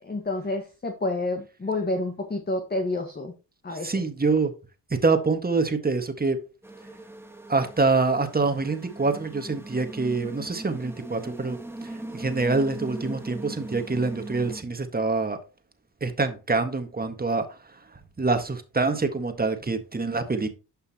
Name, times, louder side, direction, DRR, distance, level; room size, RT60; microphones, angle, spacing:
voice 1, 0.0-3.3 3.6-4.0, left 2 dB, 25° left, 1.6 m, -29 dB
voice 2, 3.8-4.5 4.9-6.4 7.5-15.4 16.0-17.4 18.2-20.5, right 3 dB, 25° right, 1.8 m, -25 dB
sound 1, 6.6-14.6, right 1 dB, 5° right, 1.4 m, -39 dB
11.0 x 5.6 x 3.0 m
supercardioid pair, 60°, 38 cm